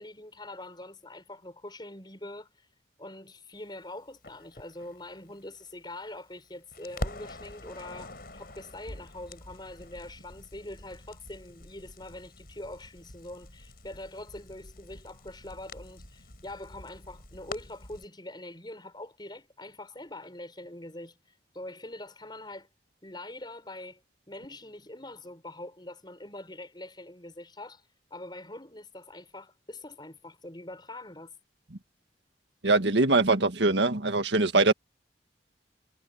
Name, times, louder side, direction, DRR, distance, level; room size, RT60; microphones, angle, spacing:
voice 1, 0.0-2.7 3.0-21.2 21.5-22.7 23.0-24.0 24.3-27.8 28.1-31.4, left 1 dB, 25° left, 6.7 m, -44 dB
Crackle, 4.2-6.4 6.7-18.0, left 1 dB, 55° left, 5.9 m, -44 dB
voice 2, 32.6-34.7, right 3 dB, 70° right, 1.8 m, -22 dB
head